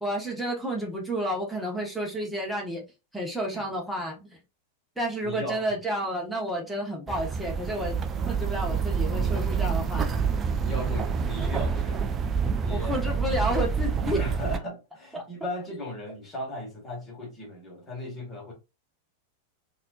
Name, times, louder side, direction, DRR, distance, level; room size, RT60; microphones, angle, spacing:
voice 1, 0.0-2.8 3.1-4.3 5.0-8.0 8.3-10.1 12.7-14.2 15.1-15.2, equal, ahead, 1.2 m, -30 dB
voice 2, 5.2-5.7 10.6-12.0 12.6-13.0 14.1-18.5, left 1 dB, 20° left, 1.7 m, -36 dB
sound 1, 7.1-14.6, right 6 dB, 25° right, 0.4 m, -27 dB
4.0 x 2.7 x 2.5 m
figure-of-eight pair, 90°, 0 cm